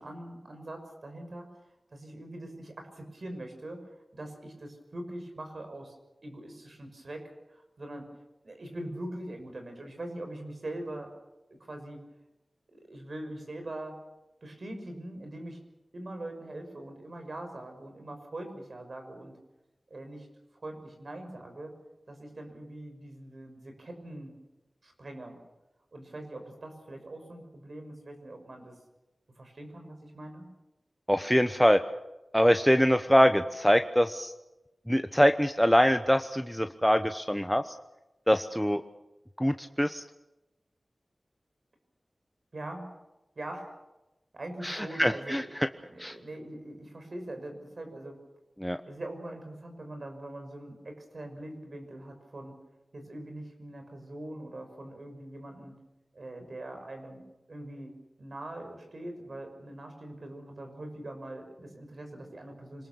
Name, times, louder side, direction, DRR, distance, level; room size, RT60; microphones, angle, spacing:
voice 1, 0.0-1.5 1.9-3.8 4.1-5.9 6.2-7.2 7.5-8.1 8.4-11.1 11.5-12.0 12.7-14.0 14.4-15.6 15.9-19.3 19.9-20.3 20.5-21.7 22.1-24.3 24.8-25.4 25.9-28.7 29.4-30.5 42.5-42.8 43.4-43.8 44.3-45.5 45.9-48.2 48.9-52.5 52.9-55.7 56.1-57.2 57.5-57.9 58.2-62.9, right 1 dB, 60° right, 5 dB, 6.2 m, -42 dB
voice 2, 31.1-31.8 32.3-34.3 34.9-37.6 38.3-38.8 39.4-40.0 44.6-45.4 46.0-46.1 48.6-48.8, equal, ahead, 7 dB, 1.0 m, -24 dB
26.5 x 20.5 x 7.1 m, 0.99 s
wide cardioid pair, 75°, 0 cm